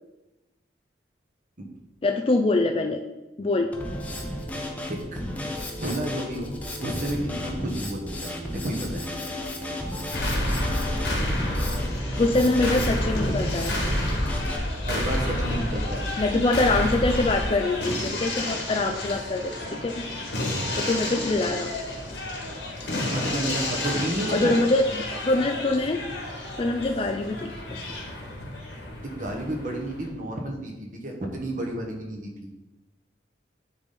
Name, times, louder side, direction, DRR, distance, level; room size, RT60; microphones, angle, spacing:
voice 1, 2.0-3.0 3.4-3.7 12.2-13.7 16.2-19.5 19.8-20.0 20.8-21.7 24.3-26.0 26.6-27.8, left 2 dB, 30° left, 4 dB, 0.4 m, -24 dB
Drum kit, 3.7-14.6, left 1 dB, 10° left, 0.7 m, -34 dB
voice 2, 4.8-5.4 5.8-6.5 6.8-8.3 8.6-9.0 14.8-16.1 22.9-24.6 29.0-32.3, right 1 dB, 45° right, 1 dB, 1.2 m, -31 dB
sound 1, 10.1-30.1, left 1 dB, 65° left, 1.6 m, -30 dB
9.7 x 4.1 x 3.9 m, 1.0 s
head